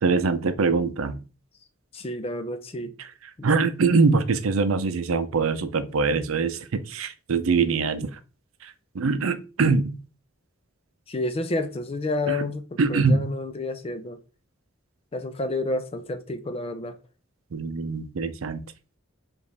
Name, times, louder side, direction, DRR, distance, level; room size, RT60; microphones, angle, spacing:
voice 1, 0.0-1.2 3.4-8.1 8.6-8.7 8.9-10.0 12.3-12.5 12.8-13.3 17.5-18.6, right 4 dB, 80° right, 0.5 m, -23 dB
voice 2, 1.9-2.9 3.4-3.5 11.1-14.2 15.1-17.0, left 2 dB, 30° left, 0.5 m, -30 dB
5.1 x 2.5 x 3.3 m
head